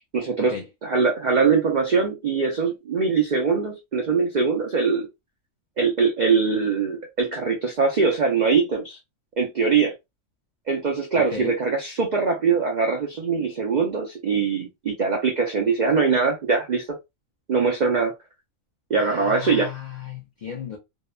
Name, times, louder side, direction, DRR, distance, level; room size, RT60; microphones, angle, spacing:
voice 1, 0.1-0.5 0.8-5.1 5.8-9.0 9.4-9.9 10.7-16.8 17.5-18.1 18.9-19.7, right 5 dB, 65° right, 0.4 m, -22 dB
voice 2, 19.0-20.8, left 7 dB, 55° left, 0.5 m, -34 dB
2.8 x 2.1 x 2.2 m
omnidirectional pair, 1.4 m